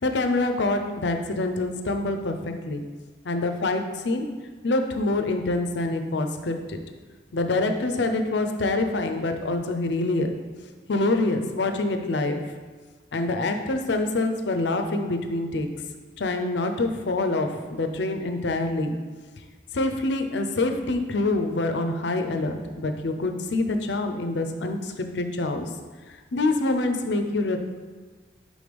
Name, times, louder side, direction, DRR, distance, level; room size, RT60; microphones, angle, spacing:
voice 1, 0.0-2.8 3.2-4.3 4.6-6.8 7.3-10.3 10.9-12.4 13.1-15.7 16.2-19.0 19.7-25.7 26.3-27.6, left 2 dB, 70° left, 6 dB, 0.5 m, -26 dB
5.2 x 3.6 x 5.1 m, 1.4 s
head